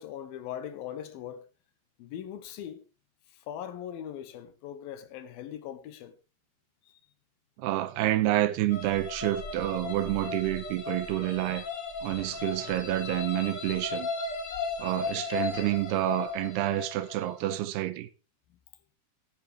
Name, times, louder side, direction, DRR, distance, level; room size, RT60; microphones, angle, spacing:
voice 1, 0.0-1.5 2.0-2.9 3.3-6.2 6.8-7.0 12.2-12.7, left 10 dB, 70° left, 2.6 m, -41 dB
voice 2, 7.6-11.7 12.0-14.1 14.8-18.1, right 15 dB, 85° right, 2.9 m, -28 dB
sound 1, 8.7-17.6, left 4 dB, 50° left, 1.3 m, -36 dB
12.5 x 12.5 x 3.4 m
omnidirectional pair, 4.7 m